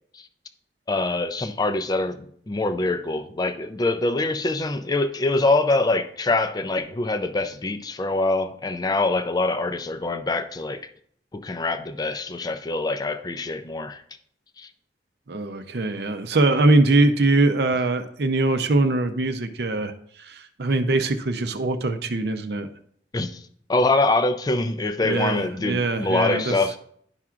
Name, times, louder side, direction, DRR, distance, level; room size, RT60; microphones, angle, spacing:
voice 1, 0.9-10.9 11.3-14.0 14.6-14.7 23.1-23.4 23.7-26.8, left 2 dB, 20° left, 10 dB, 0.4 m, -24 dB
voice 2, 15.3-19.9 20.2-22.7 25.0-26.5, right 2 dB, 60° right, 8 dB, 0.6 m, -22 dB
10.5 x 5.8 x 2.4 m, 0.64 s
head